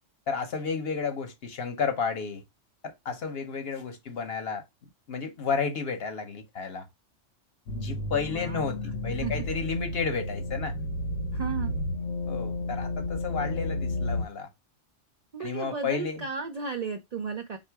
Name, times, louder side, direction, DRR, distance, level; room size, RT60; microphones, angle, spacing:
voice 1, 0.3-2.4 2.8-4.6 5.1-6.9 7.7-10.8 12.3-14.5 15.4-16.3, left 5 dB, 60° left, 0.9 m, -32 dB
sound 1, 7.7-14.2, left 1 dB, 90° left, 1.0 m, -32 dB
voice 2, 8.3-8.6 9.0-9.3 11.3-11.7 15.3-17.6, right 5 dB, 65° right, 0.4 m, -34 dB
3.6 x 2.5 x 4.5 m
omnidirectional pair, 1.2 m